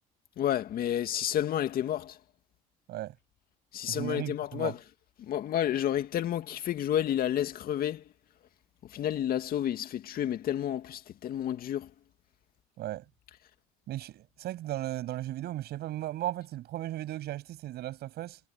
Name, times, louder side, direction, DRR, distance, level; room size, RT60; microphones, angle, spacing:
voice 1, 0.4-2.2 3.7-4.8 5.2-8.0 8.9-11.9, left 11 dB, 55° left, 2.3 m, -30 dB
voice 2, 3.9-4.7 12.8-13.0 13.9-18.4, right 14 dB, 65° right, 7.8 m, -36 dB
supercardioid pair, 90°, 18 cm